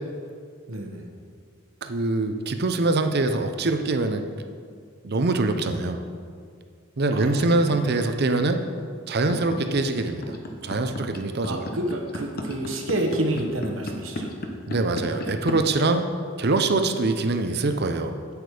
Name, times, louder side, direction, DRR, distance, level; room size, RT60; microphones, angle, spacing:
voice 1, 0.7-1.0 7.1-7.8 11.4-14.3, right 1 dB, 70° right, 2 dB, 1.3 m, -29 dB
voice 2, 1.8-4.2 5.0-6.0 7.0-8.6 9.1-10.4 10.6-11.7 14.7-16.1 16.4-18.2, right 2 dB, 50° right, 7 dB, 0.7 m, -24 dB
sound 1, 9.3-15.5, left 1 dB, 45° left, 0.9 m, -33 dB
8.8 x 8.0 x 5.0 m, 2.1 s
head